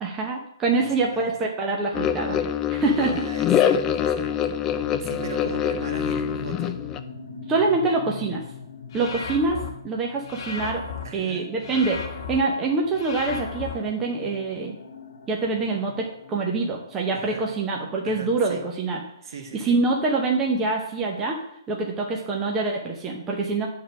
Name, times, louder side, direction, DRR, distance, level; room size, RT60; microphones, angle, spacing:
voice 1, 0.0-3.3 7.5-8.4 8.9-10.8 11.1-14.7 15.3-19.0 19.5-21.4 21.7-23.7, right 3 dB, 15° right, 0 dB, 0.8 m, -25 dB
voice 2, 0.8-1.3 3.0-4.3 4.6-6.8 11.0-11.6 17.1-17.5 18.0-18.7 19.2-19.8, right 4 dB, 55° right, 3 dB, 1.6 m, -39 dB
sound 1, 1.9-7.0, left 8 dB, 15° left, 0.4 m, -24 dB
sound 2, 3.0-18.6, left 5 dB, 80° left, 1.1 m, -43 dB
sound 3, 8.9-9.7 10.3-11.0 11.6-12.4 13.0-13.7, left 5 dB, 45° left, 1.2 m, -34 dB
9.2 x 3.8 x 5.9 m, 0.75 s
hypercardioid pair, 155°, 2 cm